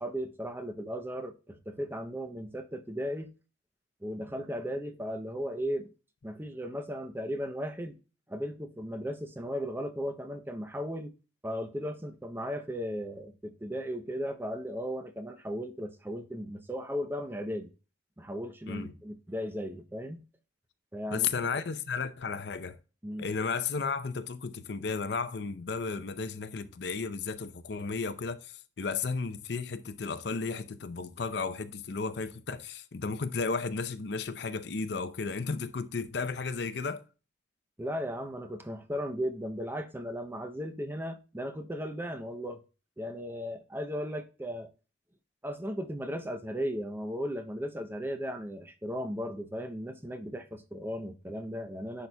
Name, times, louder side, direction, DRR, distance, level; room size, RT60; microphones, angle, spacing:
voice 1, 0.0-3.3 4.0-5.9 6.2-8.0 8.3-11.1 11.4-17.7 18.2-20.2 20.9-21.5 23.0-23.3 37.8-42.6 43.0-44.7 45.4-52.1, equal, 10° right, 0.6 m, -36 dB
voice 2, 21.1-22.8 23.2-37.0, left 4 dB, 60° left, 0.6 m, -34 dB
10.5 x 4.2 x 2.2 m
head